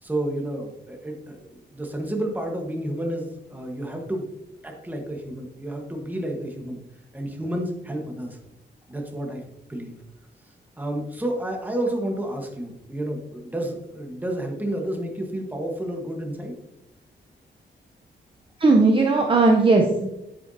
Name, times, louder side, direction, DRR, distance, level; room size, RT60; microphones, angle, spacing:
voice 1, 0.0-4.3 4.6-6.8 7.1-8.4 8.9-9.4 9.7-9.9 10.8-16.6, right 1 dB, 10° right, 1 dB, 1.4 m, -30 dB
voice 2, 18.6-20.1, right 3 dB, 30° right, 1 dB, 0.8 m, -17 dB
9.4 x 7.9 x 2.8 m, 0.90 s
wide cardioid pair, 175°, 18 cm